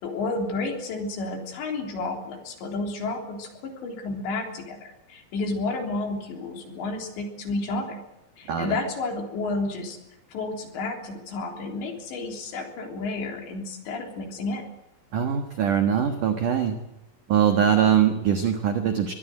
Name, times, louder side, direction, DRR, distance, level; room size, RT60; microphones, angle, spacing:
voice 1, 0.0-8.0 8.4-10.0 10.3-14.6, left 3 dB, 60° left, 3 dB, 5.5 m, -31 dB
voice 2, 15.1-16.8 17.3-19.1, right 8 dB, 70° right, 7 dB, 1.9 m, -22 dB
24.0 x 19.5 x 7.9 m, 0.90 s
omnidirectional pair, 5.8 m